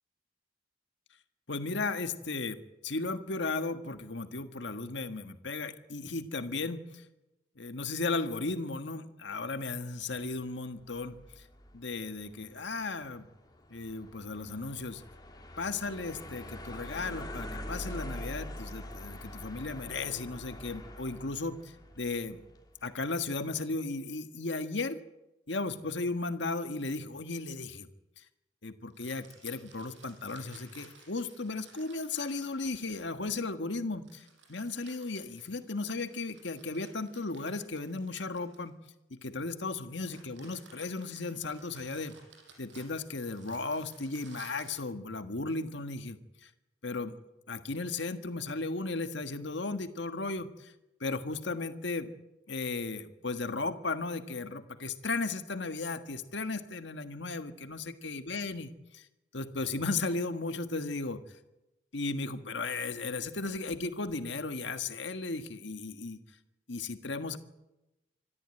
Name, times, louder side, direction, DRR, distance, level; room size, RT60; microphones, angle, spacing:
voice 1, 1.5-7.0 7.6-11.5 11.7-13.3 13.7-15.0 15.6-22.4 22.8-25.0 25.5-27.9 28.2-28.3 28.6-38.7 39.1-42.1 42.6-46.5 46.8-47.2 47.5-50.7 51.0-52.1 52.5-59.0 59.3-61.2 61.9-66.2 66.7-67.4, left 3 dB, 75° left, 9 dB, 1.6 m, -35 dB
sound 1, 10.8-23.0, left 1 dB, 20° left, 2.9 m, -45 dB
sound 2, 28.9-33.2 34.0-39.0 39.7-44.9, right 4 dB, 85° right, 5.8 m, -58 dB
25.5 x 13.0 x 9.0 m, 0.96 s
head